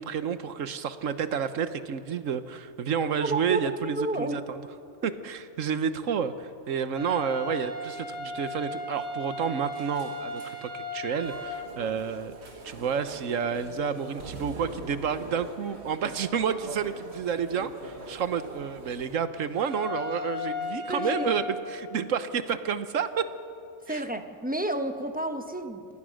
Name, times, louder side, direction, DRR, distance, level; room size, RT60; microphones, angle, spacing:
voice 1, 0.0-4.6 5.0-12.3 12.6-21.4 21.7-23.3 23.9-24.0, right 7 dB, 70° right, 12 dB, 1.3 m, -30 dB
voice 2, 3.2-4.4 20.9-21.3 23.9-25.9, right 1 dB, 5° right, 6 dB, 1.1 m, -31 dB
sound 1, 6.9-11.6 19.5-21.5, left 3 dB, 35° right, 7.5 m, -36 dB
sound 2, 9.7-10.7 12.4-12.8 13.1-13.4 14.2-16.5, right 2 dB, 90° right, 3.2 m, -47 dB
sound 3, 11.2-19.2, right 2 dB, 55° right, 2.1 m, -44 dB
28.0 x 18.5 x 6.4 m, 2.6 s
omnidirectional pair, 1.4 m